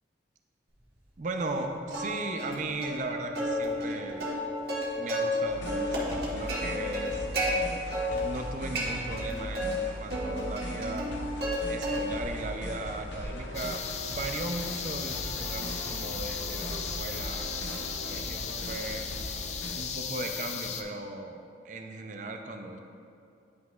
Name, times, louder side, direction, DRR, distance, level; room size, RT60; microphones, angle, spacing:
voice 1, 1.2-4.3 5.0-7.9 8.2-11.1 11.7-19.1 19.7-22.8, right 2 dB, 45° right, 4 dB, 0.5 m, -37 dB
Plucked string instrument, 1.9-2.5 2.8-3.0 3.4-5.4 5.7-7.5 7.9-8.4 8.7-9.7 10.1-11.6 11.8-12.3 12.7-17.0, right 1 dB, 60° right, 1.4 m, -33 dB
sound 1, 5.5-19.8, left 1 dB, 85° left, 0.8 m, -39 dB
sound 2, 13.5-20.8, left 7 dB, 40° left, 0.4 m, -36 dB
9.5 x 5.7 x 2.4 m, 2.5 s
head